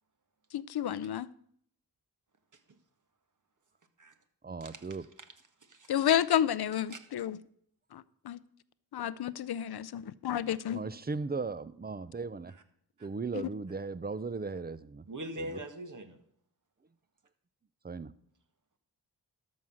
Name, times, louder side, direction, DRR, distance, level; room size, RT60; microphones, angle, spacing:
voice 1, 0.5-1.3 5.9-7.4 7.9-8.4 8.9-10.8 13.3-13.5, left 10 dB, 65° left, 0.6 m, -31 dB
voice 2, 4.4-5.0 10.7-12.5 13.0-15.0 15.4-15.5 17.8-18.1, right 4 dB, 25° right, 0.7 m, -37 dB
voice 3, 5.6-5.9 6.9-7.0 13.0-13.1 15.1-16.2, right 1 dB, 45° right, 1.7 m, -42 dB
12.5 x 6.0 x 6.4 m
cardioid pair, 55°, 41 cm